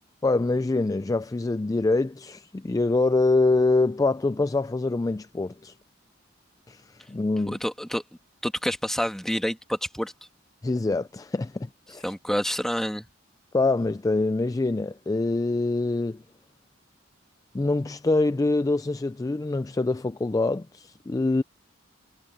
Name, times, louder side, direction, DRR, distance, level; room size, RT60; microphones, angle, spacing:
voice 1, 0.2-5.7 6.7-7.6 10.6-12.0 13.5-16.2 17.5-21.4, left 2 dB, 20° left, 0.3 m, -25 dB
voice 2, 7.5-8.0 8.4-10.1 12.0-13.1, equal, ahead, 1.5 m, -28 dB
head